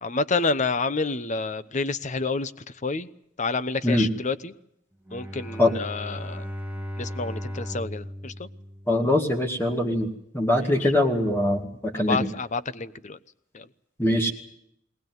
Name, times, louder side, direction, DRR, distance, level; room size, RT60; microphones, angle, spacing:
voice 1, 0.0-2.5 2.8-3.1 3.4-4.5 5.1-6.5 7.0-8.5 10.8-10.9 11.9-13.2 13.5-13.7, left 4 dB, 40° left, 15 dB, 0.9 m, -29 dB
Bowed string instrument, 5.1-9.4, equal, 10° right, 1.9 m, -36 dB
voice 2, 8.9-10.1 10.3-12.3 14.0-14.3, left 1 dB, 10° left, 2 dB, 2.2 m, -22 dB
20.5 x 19.0 x 9.4 m, 0.75 s
head